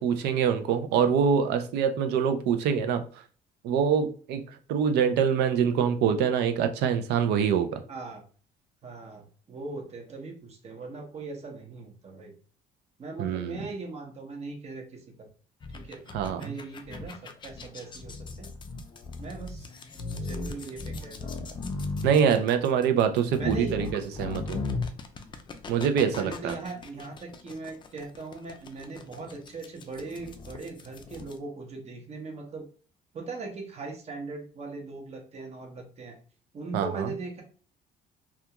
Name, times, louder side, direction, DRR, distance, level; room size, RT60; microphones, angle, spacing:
voice 1, 0.0-3.0 3.6-4.4 4.7-7.8 13.2-13.6 16.1-16.5 22.0-24.6 25.7-26.6 36.7-37.1, right 7 dB, 80° right, 8 dB, 0.5 m, -25 dB
voice 2, 7.9-8.2 8.8-12.3 13.0-15.3 15.7-16.1 16.4-18.5 19.2-21.4 22.0-22.3 23.4-23.8 26.1-32.7 33.1-36.2 36.5-37.4, right 3 dB, 40° right, 3 dB, 0.8 m, -40 dB
sound 1, 15.6-31.3, left 3 dB, 30° left, 0.4 m, -37 dB
2.3 x 2.2 x 2.8 m, 0.40 s
cardioid pair, 110°, 17 cm